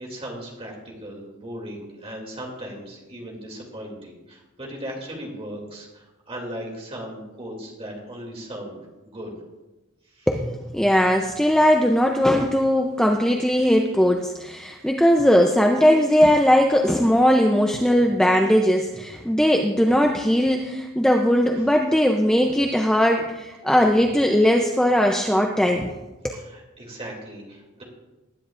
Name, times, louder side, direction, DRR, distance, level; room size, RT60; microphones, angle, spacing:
voice 1, 0.0-8.8 9.0-9.3 10.1-10.3 26.3-27.8, equal, 25° right, -1 dB, 2.6 m, -37 dB
voice 2, 10.3-25.9 26.2-26.4, equal, 5° left, 2 dB, 0.5 m, -19 dB
20.0 x 10.0 x 2.5 m, 1.1 s
head